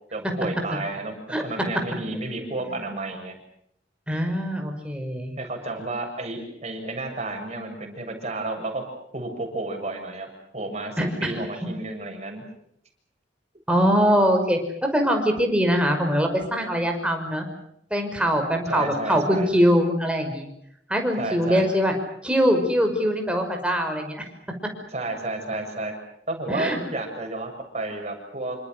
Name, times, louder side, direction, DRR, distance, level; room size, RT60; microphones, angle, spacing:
voice 1, 0.1-3.4 5.4-8.9 9.1-10.3 10.5-12.5 18.7-19.5 21.2-21.7 24.9-25.9 26.3-28.6, right 2 dB, 40° right, 4 dB, 7.3 m, -31 dB
voice 2, 4.1-5.3 11.0-11.1 13.7-17.5 17.9-20.5 20.9-21.9 22.2-24.2 26.5-26.8, equal, 5° right, 3 dB, 5.9 m, -22 dB
28.0 x 26.0 x 6.4 m, 0.73 s
head